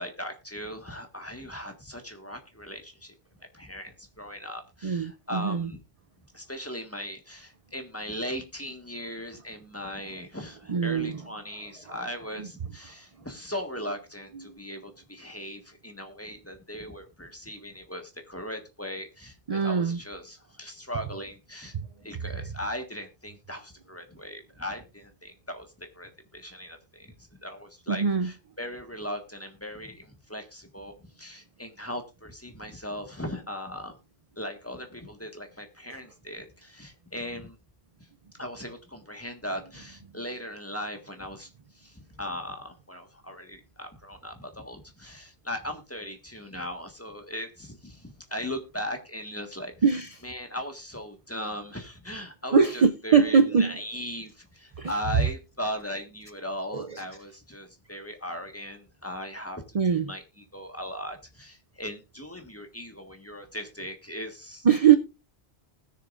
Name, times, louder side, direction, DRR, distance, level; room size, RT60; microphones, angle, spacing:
voice 1, 0.0-3.1 3.5-5.8 6.3-21.7 22.0-34.0 34.4-37.6 38.4-49.8 50.2-59.6 59.9-64.7, equal, 15° left, 1.5 m, -38 dB
voice 2, 4.8-5.7 10.7-11.1 14.4-14.5 19.5-20.0 21.7-21.8 27.9-28.3 49.8-50.1 52.5-53.7 54.8-54.9 56.7-57.0 59.7-60.1 64.6-65.0, right 6 dB, 45° right, 0.5 m, -22 dB
20.0 x 6.8 x 2.5 m
omnidirectional pair, 1.1 m